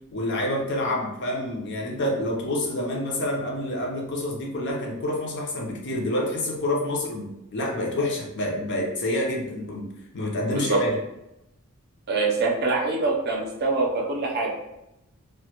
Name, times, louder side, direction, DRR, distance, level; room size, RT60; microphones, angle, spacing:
voice 1, 0.1-9.9 10.1-11.0, left 1 dB, 55° left, -1 dB, 0.5 m, -28 dB
voice 2, 10.5-10.8 12.1-14.5, right 3 dB, 45° right, -1 dB, 0.5 m, -24 dB
2.1 x 2.1 x 2.8 m, 0.88 s
head